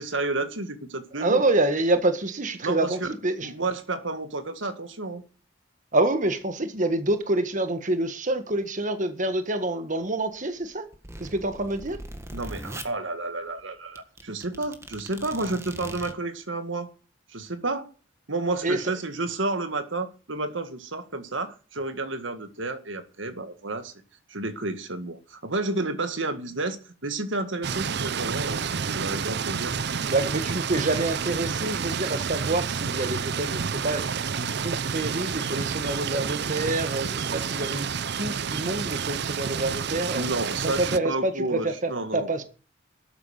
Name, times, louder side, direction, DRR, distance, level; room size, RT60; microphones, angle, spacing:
voice 1, 0.0-1.4 2.6-3.1 3.4-5.2 12.3-16.9 17.3-17.9 18.3-23.9 24.3-29.7 40.1-42.4, right 2 dB, 80° right, 1.9 m, -31 dB
voice 2, 1.1-3.5 5.9-10.9 11.2-12.0 18.6-18.8 30.0-34.1 34.3-37.9 38.2-40.3 40.6-42.4, right 2 dB, 40° right, 1.6 m, -27 dB
sound 1, 10.6-12.9 13.6-13.7 13.9-16.1, right 1 dB, 15° right, 1.7 m, -40 dB
sound 2, 27.6-41.0, right 6 dB, 60° right, 0.6 m, -29 dB
13.0 x 9.7 x 6.5 m
head